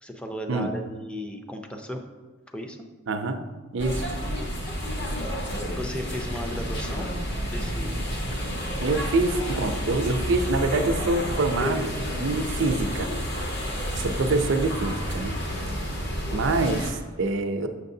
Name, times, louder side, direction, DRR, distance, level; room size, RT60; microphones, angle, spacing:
voice 1, 0.0-2.0 2.5-2.8 5.7-8.1, equal, 5° left, 4 dB, 0.5 m, -35 dB
voice 2, 3.1-3.4 3.7-4.1 8.8-13.1 13.9-15.3 16.3-17.7, right 2 dB, 65° right, 6 dB, 0.6 m, -25 dB
sound 1, 3.8-16.9, equal, 60° left, 1.4 m, -30 dB
6.9 x 6.6 x 2.7 m, 1.4 s
head